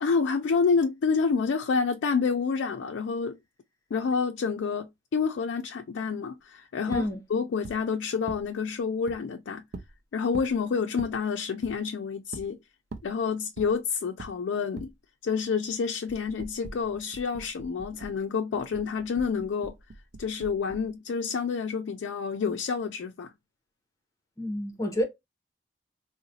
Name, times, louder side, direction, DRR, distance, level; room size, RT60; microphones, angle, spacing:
voice 1, 0.0-3.4 3.9-9.6 10.1-12.6 13.0-14.9 15.2-19.7 20.2-23.3, left 5 dB, 85° left, 0.4 m, -28 dB
voice 2, 6.9-7.2 24.4-25.0, equal, 15° left, 0.7 m, -29 dB
sound 1, 6.9-7.1 7.6-7.8 8.3-8.4 9.1-9.2 9.7-9.9 10.3-10.5 11.0-11.1 11.6-11.8 12.3-12.5 12.9-13.1 13.6-13.7 14.2-14.3 14.8-14.9 16.1-18.2 18.5-20.9, right 3 dB, 70° right, 0.4 m, -42 dB
3.8 x 2.1 x 2.7 m
head